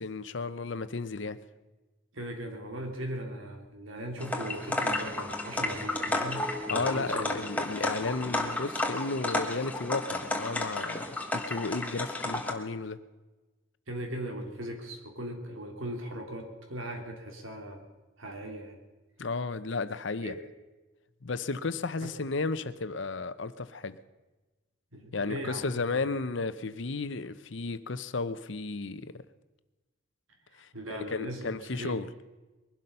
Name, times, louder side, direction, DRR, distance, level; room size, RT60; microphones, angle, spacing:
voice 1, 0.0-1.4 6.7-11.1 11.3-13.0 19.2-20.3 21.2-24.0 25.1-29.2 30.6-30.7 31.1-32.1, left 3 dB, 65° left, 0.8 m, -33 dB
voice 2, 2.1-7.3 13.9-17.9 18.2-18.8 20.2-20.4 22.0-22.1 24.9-26.0 30.5-32.0, right 1 dB, 85° right, 3.0 m, -39 dB
sound 1, 4.2-12.5, left 2 dB, 5° left, 1.4 m, -32 dB
sound 2, 4.9-11.5, left 2 dB, 15° right, 2.8 m, -46 dB
21.5 x 12.0 x 5.6 m
head